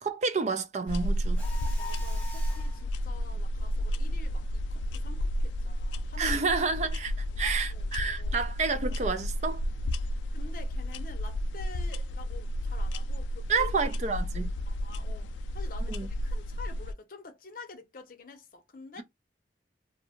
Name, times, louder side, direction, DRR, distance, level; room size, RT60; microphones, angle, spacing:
voice 1, 0.0-1.4 6.2-9.6 13.5-14.5 15.9-16.1, right 4 dB, 40° right, 0.4 m, -30 dB
sound 1, 0.9-16.9, equal, 90° left, 0.3 m, -32 dB
Mechanisms, 1.4-2.8, left 3 dB, 5° left, 0.9 m, -43 dB
voice 2, 1.8-6.5 7.3-7.4 7.7-8.5 10.3-13.7 14.7-19.0, left 3 dB, 50° left, 0.6 m, -48 dB
2.6 x 2.2 x 2.8 m
head